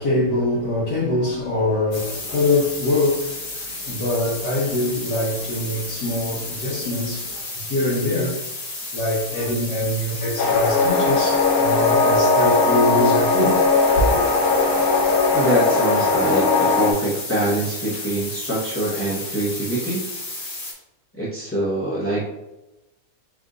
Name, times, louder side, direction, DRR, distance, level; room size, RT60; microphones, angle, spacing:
voice 1, 0.0-8.4 8.9-13.6 14.0-14.2, left 1 dB, 85° left, 1.9 m, -23 dB
sound 1, 1.9-20.7, left 2 dB, 35° left, 1.1 m, -32 dB
sound 2, 10.4-16.9, left 3 dB, 65° left, 1.1 m, -19 dB
voice 2, 15.3-20.0 21.2-22.3, right 1 dB, 15° left, 0.5 m, -24 dB
4.4 x 2.5 x 3.8 m
omnidirectional pair, 1.7 m